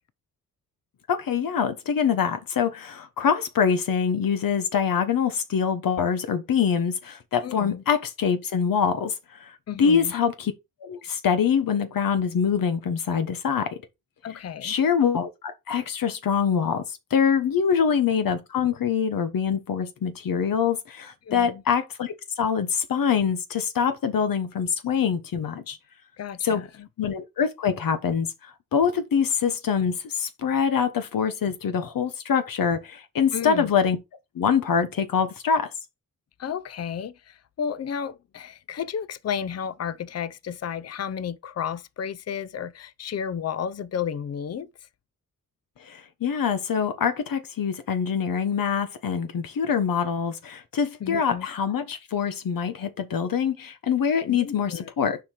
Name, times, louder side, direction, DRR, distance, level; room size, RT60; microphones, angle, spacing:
voice 1, 1.1-9.5 9.8-10.5 10.8-13.8 14.6-25.8 26.4-26.6 27.0-34.0 34.3-35.7 45.8-55.2, left 7 dB, 85° left, 1.2 m, -24 dB
voice 2, 7.4-7.8 9.7-10.1 14.2-14.7 21.2-21.6 26.2-26.9 33.3-33.7 36.4-44.7 51.0-51.5 54.3-54.9, left 8 dB, 50° left, 0.6 m, -32 dB
6.9 x 4.9 x 4.9 m
wide cardioid pair, 100°, 33 cm